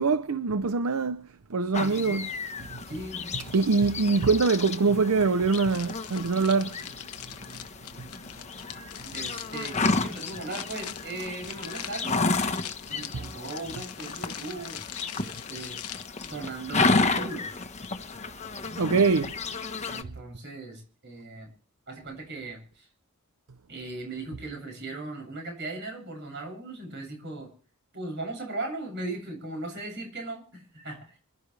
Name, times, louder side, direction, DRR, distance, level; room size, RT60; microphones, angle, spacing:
voice 1, 0.0-2.3 3.3-6.8 8.0-8.1 13.1-13.2 18.8-19.4, right 4 dB, 75° right, 0.7 m, -24 dB
sound 1, 1.7-20.0, left 3 dB, 30° left, 1.2 m, -32 dB
voice 2, 1.8-2.2 2.9-3.4 9.1-12.2 12.9-14.8 15.2-15.8 16.2-17.6 19.9-21.5 21.9-22.9 23.7-27.5 27.9-31.1, right 2 dB, 55° right, 7.5 m, -38 dB
sound 2, 5.5-18.2, left 10 dB, 85° left, 1.1 m, -43 dB
26.5 x 12.0 x 3.4 m
head